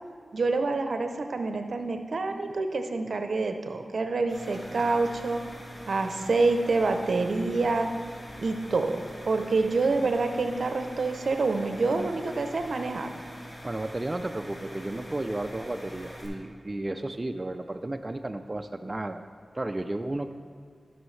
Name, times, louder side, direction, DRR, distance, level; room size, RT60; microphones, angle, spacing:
voice 1, 0.3-5.4 5.9-7.9 8.4-9.0 9.2-13.1, right 3 dB, 75° right, 6 dB, 0.6 m, -27 dB
sound 1, 4.3-16.3, equal, 25° left, 2.3 m, -44 dB
voice 2, 13.6-19.2 19.5-20.3, right 2 dB, 35° right, 7 dB, 0.4 m, -33 dB
14.0 x 6.3 x 3.2 m, 2.1 s
cardioid pair, 45°, 0 cm